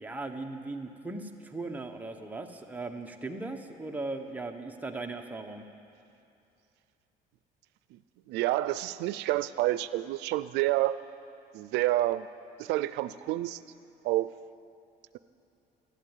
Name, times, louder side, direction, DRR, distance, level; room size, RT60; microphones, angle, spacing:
voice 1, 0.0-5.6, right 2 dB, 10° right, 3 dB, 1.2 m, -38 dB
voice 2, 8.3-11.0 11.5-12.3 12.6-13.6 14.0-14.3, right 16 dB, 90° right, 14 dB, 0.4 m, -28 dB
13.0 x 12.0 x 9.1 m, 2.7 s
cardioid pair, 110°, 17 cm